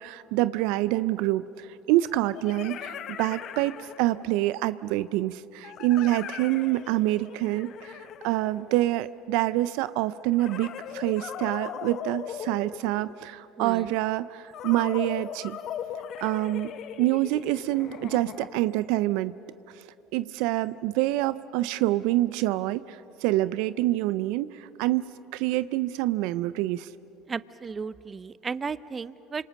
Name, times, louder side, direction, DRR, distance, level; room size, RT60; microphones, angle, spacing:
voice 1, 0.0-15.6 16.2-16.7 17.0-19.3 19.8-19.9 20.1-26.9, right 16 dB, 70° right, 16 dB, 0.5 m, -26 dB
sound 1, 0.6-0.7 2.0-4.4 5.6-9.1 10.3-13.4 14.5-18.8, left 9 dB, 55° left, 0.9 m, -39 dB
voice 2, 13.6-13.9 27.3-29.5, right 5 dB, 30° right, 17 dB, 0.7 m, -34 dB
28.5 x 26.0 x 6.4 m, 3.0 s
hypercardioid pair, 75°, 0 cm